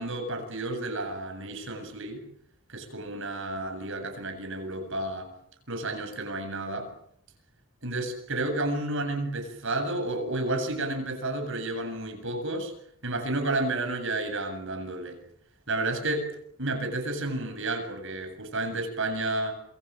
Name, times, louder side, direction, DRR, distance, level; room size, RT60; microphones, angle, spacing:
voice 1, 0.0-2.2 2.7-5.3 5.7-6.9 7.8-12.7 13.0-15.2 15.7-16.3 16.6-19.5, right 2 dB, 60° right, 6 dB, 7.7 m, -31 dB
27.5 x 24.5 x 7.7 m, 0.69 s
head